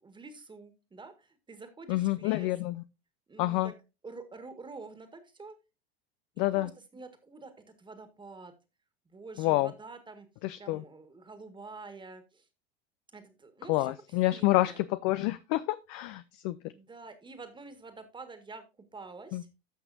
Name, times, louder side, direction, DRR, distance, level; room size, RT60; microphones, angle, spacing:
voice 1, 0.0-2.5 3.3-3.7 4.0-5.6 6.5-8.5 9.1-10.3 10.6-12.5 13.1-13.9 14.3-14.8 16.7-18.7 18.9-19.5, right 3 dB, 15° right, 9 dB, 1.8 m, -47 dB
voice 2, 1.9-2.8 3.4-3.7 6.4-6.7 9.4-9.7 10.4-10.8 13.7-16.6 19.3-19.4, left 17 dB, 50° left, 14 dB, 0.5 m, -28 dB
15.0 x 6.0 x 2.7 m, 0.27 s
hypercardioid pair, 90°, 31 cm